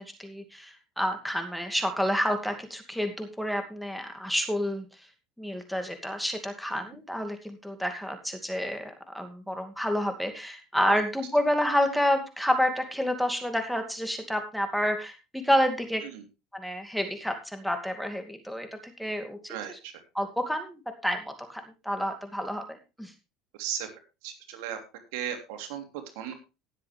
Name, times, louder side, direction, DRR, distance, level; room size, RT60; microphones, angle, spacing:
voice 1, 0.0-4.9 5.4-16.0 16.5-19.8 20.1-23.1, equal, ahead, 6 dB, 2.4 m, -29 dB
voice 2, 19.5-19.9 23.6-23.9 24.2-24.8 25.1-25.8 26.1-26.3, right 9 dB, 75° right, 5 dB, 3.1 m, -35 dB
18.0 x 7.7 x 3.4 m, 0.27 s
supercardioid pair, 95°, 0 cm